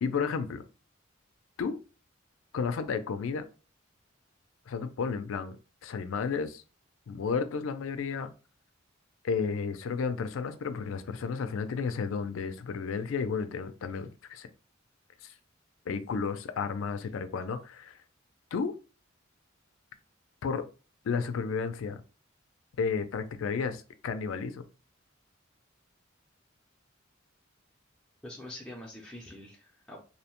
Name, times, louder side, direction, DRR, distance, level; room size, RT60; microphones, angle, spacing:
voice 1, 0.0-0.6 1.6-1.8 2.5-3.4 4.7-5.6 5.8-6.6 7.1-8.3 9.2-14.5 15.2-15.3 15.9-18.0 18.5-18.8 20.4-20.6 21.0-22.0 22.8-24.6, left 5 dB, 80° left, 0.4 m, -32 dB
voice 2, 28.2-30.0, left 1 dB, 5° left, 0.4 m, -45 dB
2.7 x 2.1 x 2.8 m
head